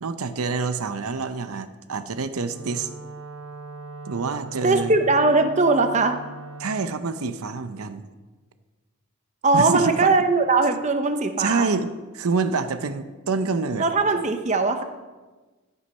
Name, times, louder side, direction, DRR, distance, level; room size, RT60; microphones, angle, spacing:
voice 1, 0.0-2.9 4.1-4.9 6.6-8.1 9.5-10.1 11.4-13.9, right 4 dB, 80° right, 10 dB, 0.6 m, -27 dB
Wind instrument woodwind instrument, 2.4-6.9, right 2 dB, 60° right, 1.1 m, -40 dB
voice 2, 4.6-6.2 9.4-11.7 13.8-14.8, right 3 dB, 30° right, 7 dB, 0.7 m, -20 dB
13.0 x 8.3 x 5.5 m, 1.3 s
head